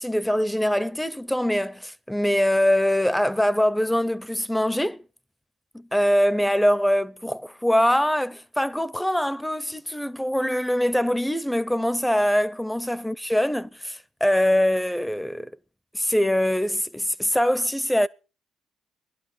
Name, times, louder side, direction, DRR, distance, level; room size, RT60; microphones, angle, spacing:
voice 1, 0.0-5.0 5.7-15.5 15.9-18.1, equal, 5° left, 0.7 m, -23 dB
18.0 x 11.5 x 4.9 m
supercardioid pair, 65°, 0 cm